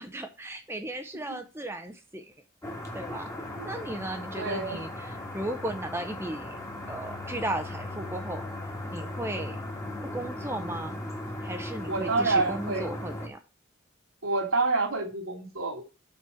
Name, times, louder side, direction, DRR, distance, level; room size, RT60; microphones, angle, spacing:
voice 1, 0.0-2.3 2.9-3.3 3.6-6.6 6.9-8.4 8.9-9.6 10.0-11.0 11.4-13.4, right 1 dB, 10° right, 6 dB, 0.7 m, -35 dB
sound 1, 2.6-13.3, left 1 dB, 15° left, 1.7 m, -37 dB
voice 2, 4.4-4.8 11.9-12.9 14.2-15.8, right 3 dB, 85° right, -1 dB, 3.1 m, -28 dB
6.2 x 6.1 x 7.0 m, 0.32 s
head